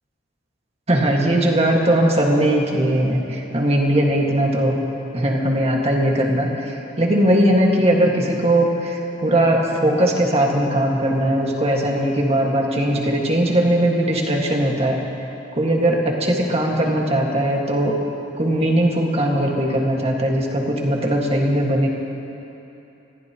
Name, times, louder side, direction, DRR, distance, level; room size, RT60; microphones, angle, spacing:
voice 1, 0.9-4.8 5.1-15.0 15.5-18.0 18.4-21.9, right 1 dB, 35° right, -1 dB, 1.9 m, -19 dB
26.0 x 15.0 x 3.1 m, 2.9 s
head